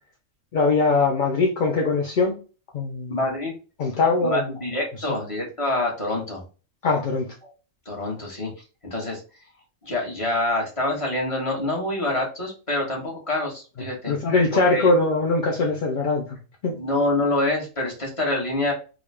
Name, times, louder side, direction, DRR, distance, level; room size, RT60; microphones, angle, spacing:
voice 1, 0.5-2.4 2.7-3.2 3.8-4.4 6.8-7.3 14.1-16.4 16.6-16.7, left 3 dB, 50° left, 0.6 m, -21 dB
voice 2, 3.1-3.5 4.2-6.4 7.4-7.5 7.8-8.5 8.8-9.2 9.8-14.2 14.5-14.9 16.7-18.7, left 2 dB, 25° left, 1.3 m, -26 dB
3.7 x 2.3 x 3.3 m
omnidirectional pair, 1.4 m